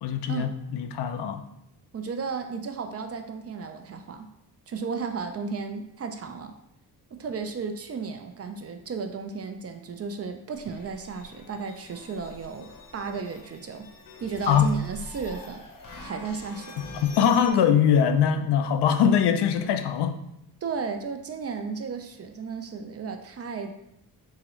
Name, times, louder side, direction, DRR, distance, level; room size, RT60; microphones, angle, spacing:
voice 1, 0.0-1.4 14.5-14.7 17.0-20.2, left 8 dB, 80° left, 7 dB, 0.5 m, -22 dB
voice 2, 1.9-4.3 4.7-6.5 7.1-13.9 14.2-15.6 16.0-16.8 20.6-23.7, right 5 dB, 40° right, 7 dB, 0.4 m, -34 dB
sound 1, 10.5-17.5, left 3 dB, 55° left, 0.9 m, -45 dB
3.7 x 2.9 x 3.0 m, 0.78 s
cardioid pair, 70°, 40 cm